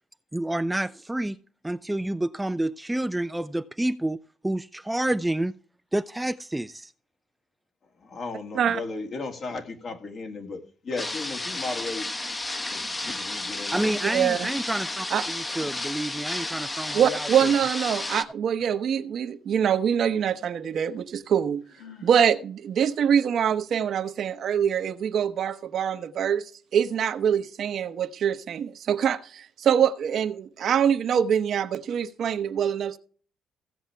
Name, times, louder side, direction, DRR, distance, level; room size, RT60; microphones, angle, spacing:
voice 1, 0.3-1.4 1.6-5.5 5.9-6.9 13.7-17.5, right 1 dB, 10° right, 0.4 m, -29 dB
voice 2, 8.0-12.1 12.7-13.9, left 3 dB, 55° left, 2.2 m, -35 dB
sound 1, 11.0-18.2, left 2 dB, 20° left, 1.1 m, -32 dB
voice 3, 14.0-14.5 15.1-15.3 16.9-21.6 22.0-33.0, right 8 dB, 65° right, 0.9 m, -24 dB
Sigh, 21.6-22.3, left 7 dB, 80° left, 2.4 m, -48 dB
16.5 x 7.2 x 3.5 m
cardioid pair, 90°, 0 cm